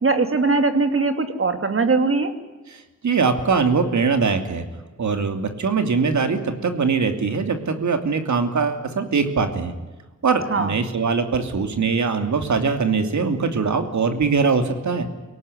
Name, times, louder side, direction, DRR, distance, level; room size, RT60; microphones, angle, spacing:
voice 1, 0.0-2.3 10.5-10.7, right 3 dB, 50° right, 8 dB, 2.9 m, -20 dB
voice 2, 2.7-4.6 5.0-9.7 10.2-15.1, right 5 dB, 80° right, 7 dB, 2.8 m, -22 dB
23.5 x 18.0 x 9.8 m, 1.2 s
wide cardioid pair, 90°, 29 cm